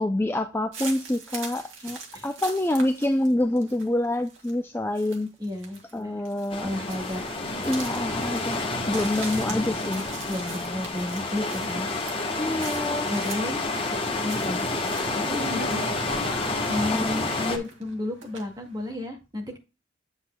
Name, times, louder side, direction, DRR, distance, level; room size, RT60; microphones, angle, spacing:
voice 1, 0.0-5.3 5.9-6.7 7.6-10.0 12.4-13.1 16.9-17.0, left 1 dB, 10° left, 0.4 m, -26 dB
sound 1, 0.7-17.2 17.6-18.9, right 4 dB, 75° right, 2.2 m, -41 dB
voice 2, 5.4-5.8 6.6-7.2 9.5-9.6 10.3-11.9 13.0-13.6 13.9-14.7 15.1-15.8 16.7-19.6, left 1 dB, 20° right, 2.0 m, -32 dB
sound 2, 6.5-17.6, left 2 dB, 25° left, 1.3 m, -29 dB
8.1 x 8.1 x 2.2 m
head